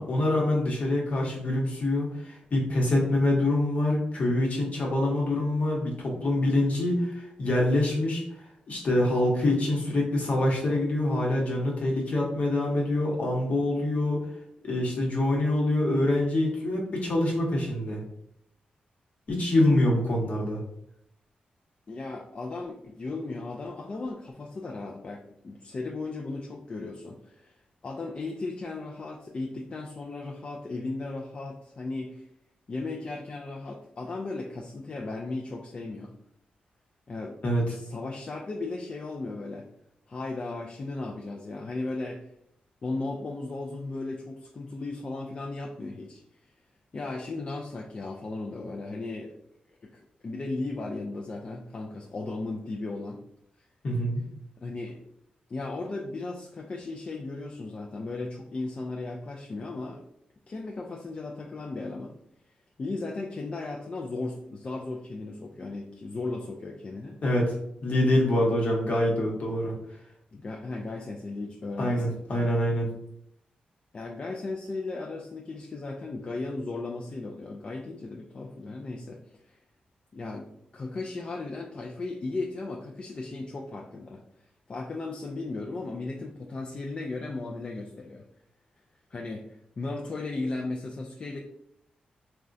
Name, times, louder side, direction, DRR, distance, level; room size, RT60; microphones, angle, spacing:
voice 1, 0.0-8.2 8.7-14.2 14.6-18.0 19.3-20.6 37.4-37.6 53.8-54.2 67.2-67.5 67.8-69.7 71.8-72.9, left 1 dB, 55° left, -2 dB, 0.9 m, -25 dB
voice 2, 21.9-27.5 27.8-32.3 32.7-36.1 37.1-37.4 37.7-39.7 40.1-42.3 42.8-46.2 46.9-49.3 49.8-53.2 54.6-55.0 55.5-60.0 60.5-62.2 62.8-67.2 70.3-72.2 73.9-79.6 80.1-80.5 80.7-84.2 84.7-88.2 89.1-91.4, left 3 dB, 40° left, 0 dB, 0.3 m, -36 dB
3.5 x 2.2 x 2.5 m, 0.76 s
cardioid pair, 100°, 3 cm